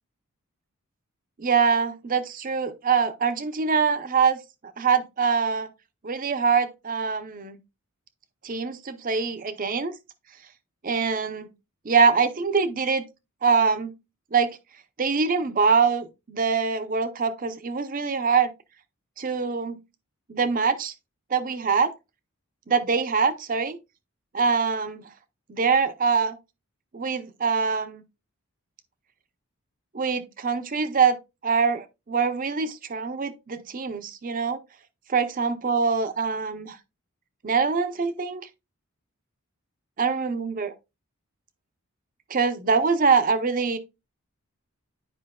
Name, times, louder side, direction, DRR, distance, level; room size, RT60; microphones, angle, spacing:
voice 1, 1.4-4.4 4.8-5.7 6.0-7.6 8.4-9.9 10.8-11.5 11.8-13.0 13.4-13.9 14.3-14.6 15.0-18.5 19.2-19.8 20.3-20.9 21.3-21.9 22.7-23.8 24.3-25.1 25.5-26.4 26.9-28.0 29.9-31.2 31.4-34.6 35.1-36.8 37.4-38.4 40.0-40.7 42.3-43.8, right 5 dB, 40° right, 0.6 m, -24 dB
9.8 x 5.0 x 2.2 m
head